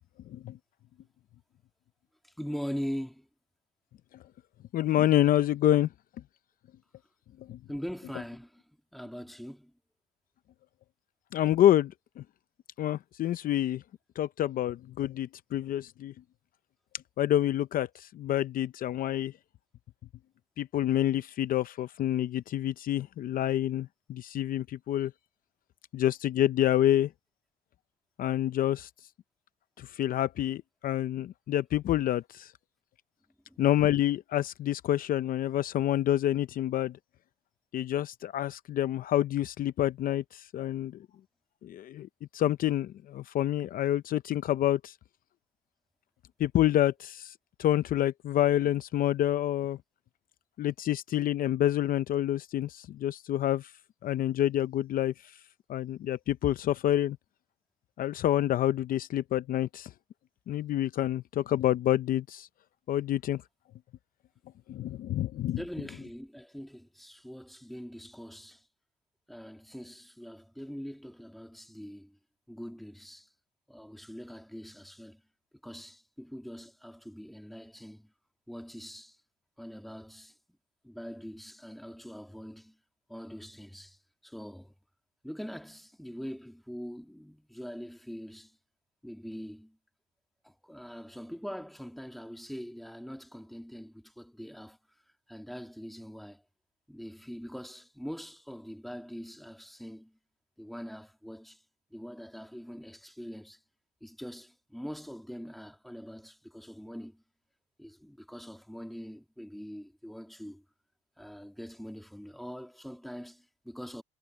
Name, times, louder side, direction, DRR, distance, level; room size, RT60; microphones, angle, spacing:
voice 1, 2.4-3.3 7.7-8.6 8.9-9.7 33.5-33.6 65.6-68.6 69.3-72.2 72.5-73.3 73.7-75.2 75.6-78.1 78.5-79.2 79.6-80.3 80.8-82.8 83.1-84.7 85.2-88.6 89.0-89.8 90.4-94.8 95.3-96.4 96.9-100.2 100.6-101.6 101.9-103.6 104.0-107.2 107.8-110.6 111.2-114.0, equal, ahead, 2.1 m, -43 dB
voice 2, 4.7-5.9 7.5-7.6 11.3-11.9 12.2-12.3 12.8-13.8 14.2-16.1 17.2-19.3 20.6-25.1 25.9-27.1 28.2-28.9 29.8-32.5 33.6-36.9 37.7-40.9 41.6-42.1 42.3-44.9 46.4-47.3 47.6-49.8 50.6-53.7 54.0-55.1 55.7-57.2 58.0-59.9 60.5-62.5 62.9-63.4 64.7-65.6, left 12 dB, 55° left, 0.6 m, -27 dB
cardioid pair, 110°, 17 cm